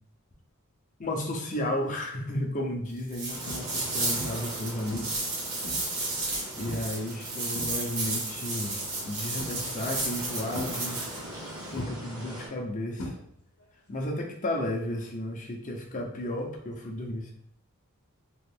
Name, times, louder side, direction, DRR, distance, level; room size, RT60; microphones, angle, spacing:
voice 1, 1.0-5.3 5.6-5.7 6.6-11.0 11.4-13.2 13.9-17.3, left 1 dB, 35° left, 1 dB, 0.6 m, -33 dB
sound 1, 1.8-2.2 2.7-2.9 3.5-3.9 4.2-4.6 4.9-6.0 6.7-7.0 7.3-8.2 9.4-9.9 10.5-11.4 11.8-13.7 13.9-14.3 16.4-16.5, equal, 80° left, 0.8 m, -40 dB
sound 2, 3.1-11.2, right 2 dB, 60° right, 1.3 m, -33 dB
sound 3, 3.3-12.5, right 1 dB, 20° right, 0.7 m, -42 dB
3.0 x 2.4 x 3.5 m, 0.70 s
head